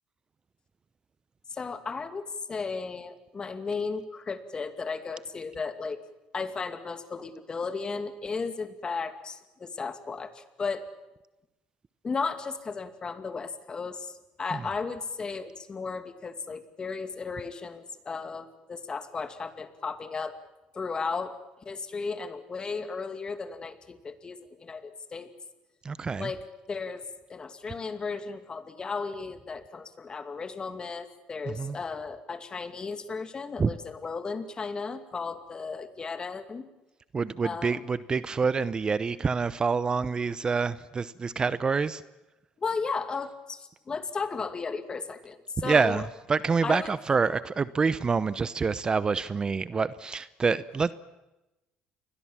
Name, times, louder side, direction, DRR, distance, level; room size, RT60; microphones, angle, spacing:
voice 1, 1.5-6.0 6.3-10.9 12.0-20.3 20.7-21.4 21.6-25.3 26.2-27.0 27.3-36.7 37.4-37.8 42.6-46.0 46.6-46.9, left 4 dB, 30° left, 9 dB, 2.4 m, -35 dB
voice 2, 25.8-26.3 31.5-31.8 33.6-33.7 37.1-42.0 45.6-50.9, right 5 dB, 30° right, 16 dB, 0.8 m, -27 dB
29.0 x 21.5 x 7.4 m, 0.99 s
supercardioid pair, 90°, 3 cm